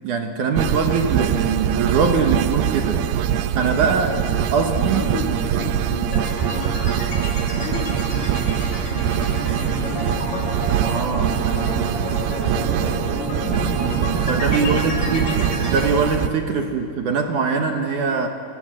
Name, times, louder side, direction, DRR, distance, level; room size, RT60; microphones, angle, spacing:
voice 1, 0.0-3.1 3.5-4.1 4.5-5.1 10.9-11.7 13.8-15.3 15.7-18.3, right 5 dB, 60° right, 4 dB, 2.4 m, -22 dB
sound 1, 0.6-16.3, right 9 dB, 90° right, 3.0 m, -23 dB
voice 2, 4.6-7.0 7.5-10.5 11.3-13.5 14.5-15.6 16.5-16.6, left 4 dB, 70° left, 0 dB, 4.8 m, -35 dB
sound 2, 6.1-15.9, left 1 dB, 30° left, 4.2 m, -30 dB
30.0 x 21.5 x 7.7 m, 2.5 s
omnidirectional pair, 4.5 m